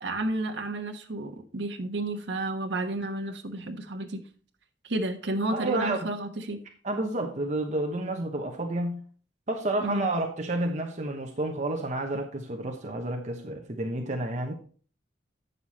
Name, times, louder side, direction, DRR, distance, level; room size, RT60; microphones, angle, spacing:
voice 1, 0.0-4.2 4.8-6.6 9.8-10.1, right 2 dB, 70° right, 5 dB, 1.2 m, -31 dB
voice 2, 5.5-6.0 6.8-9.0 9.5-14.5, right 2 dB, 40° right, 3 dB, 1.0 m, -30 dB
9.0 x 6.7 x 4.2 m, 0.43 s
head